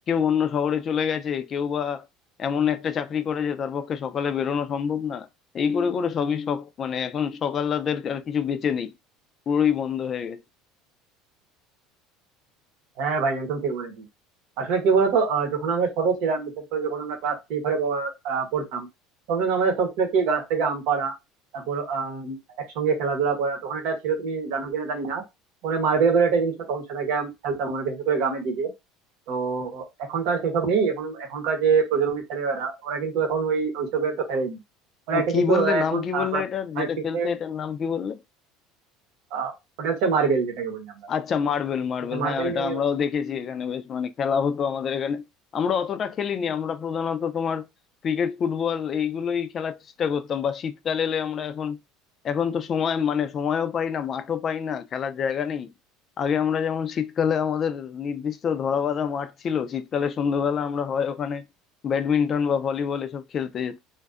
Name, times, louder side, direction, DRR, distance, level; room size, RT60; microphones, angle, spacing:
voice 1, 0.1-2.1 2.4-5.3 5.5-8.9 9.5-10.4 35.1-38.2 41.1-45.2 45.5-47.7 48.0-51.8 52.2-55.7 56.2-61.4 61.8-63.8, left 7 dB, 40° left, 0.3 m, -26 dB
voice 2, 13.0-14.0 14.6-18.9 19.3-21.1 21.5-22.4 22.7-25.2 25.6-28.7 29.3-34.6 35.1-36.4 36.8-36.9 37.1-37.3 39.3-39.5 39.8-41.1 42.1-42.8, right 5 dB, 70° right, 0.9 m, -25 dB
2.5 x 2.2 x 2.3 m
supercardioid pair, 110°, 0 cm